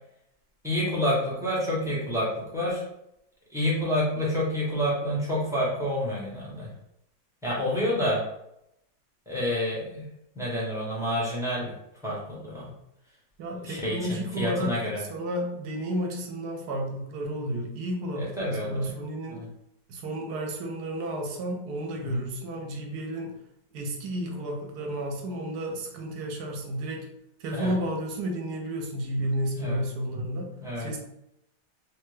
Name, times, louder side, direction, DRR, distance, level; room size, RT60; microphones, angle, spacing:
voice 1, 0.6-2.8 3.5-6.7 7.4-8.2 9.3-10.1 10.3-11.7 12.0-12.7 13.6-15.0 18.2-18.9 19.3-19.4 22.1-22.2 27.5-27.7 29.6-29.8 30.6-30.9, left 1 dB, 5° right, -6 dB, 0.5 m, -28 dB
voice 2, 13.4-19.4 19.9-23.4 23.7-27.1 27.4-30.5 30.8-31.0, right 1 dB, 80° right, 2 dB, 1.2 m, -32 dB
3.2 x 2.2 x 3.2 m, 0.82 s
omnidirectional pair, 1.7 m